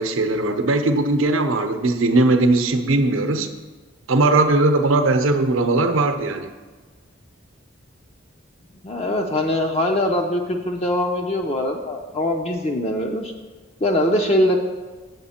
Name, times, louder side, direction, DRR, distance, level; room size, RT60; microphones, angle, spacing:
voice 1, 0.0-3.5 4.1-6.5, right 2 dB, 80° right, 7 dB, 0.7 m, -19 dB
voice 2, 8.8-13.3 13.8-14.6, left 1 dB, 30° left, 2 dB, 0.5 m, -22 dB
8.1 x 7.2 x 4.3 m, 1.3 s
head